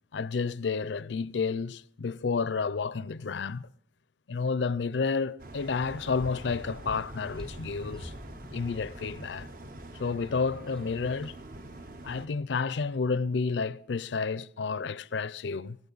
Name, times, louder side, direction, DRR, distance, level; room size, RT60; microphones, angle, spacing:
voice 1, 0.1-3.6 4.3-8.1 8.5-9.5 9.9-11.4 12.0-15.8, left 4 dB, 75° left, 0.5 m, -30 dB
sound 1, 5.4-12.3, right 2 dB, 50° right, 0.8 m, -46 dB
sound 2, 5.8-12.2, left 1 dB, 5° left, 0.6 m, -47 dB
18.5 x 15.5 x 4.0 m
head